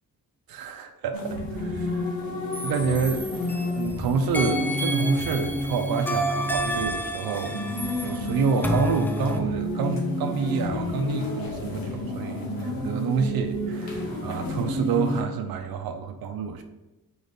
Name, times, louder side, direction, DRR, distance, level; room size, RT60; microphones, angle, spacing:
voice 1, 0.5-2.2 2.6-7.6 8.0-16.6, right 5 dB, 85° right, 5 dB, 0.6 m, -28 dB
sound 1, 1.1-15.2, equal, 85° left, 1.4 m, -30 dB
sound 2, 2.5-3.9 4.3-9.4, equal, 5° left, 0.5 m, -30 dB
4.8 x 4.0 x 5.0 m, 1.0 s
cardioid pair, 110°, 35 cm